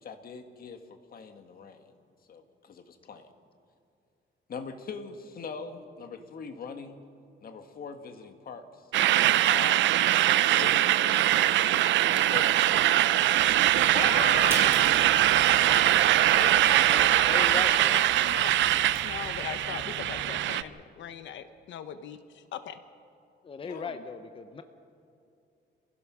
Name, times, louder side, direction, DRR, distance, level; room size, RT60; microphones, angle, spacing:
voice 1, 0.0-1.9 2.3-3.3 4.5-7.0 7.4-9.8 10.5-11.5 12.3-12.9 23.6-23.8, left 5 dB, 50° left, 7 dB, 1.6 m, -42 dB
sound 1, 8.9-20.6, right 13 dB, 90° right, 0.5 m, -22 dB
sound 2, 13.3-20.3, equal, 15° right, 5.1 m, -42 dB
voice 2, 13.9-15.0 15.5-15.8 16.4-22.8 23.7-24.0, left 9 dB, 85° left, 10 dB, 0.9 m, -39 dB
voice 3, 16.9-18.1 23.4-24.6, left 5 dB, 30° left, 8 dB, 0.8 m, -38 dB
26.5 x 16.0 x 6.2 m, 2.5 s
cardioid pair, 145°, 19 cm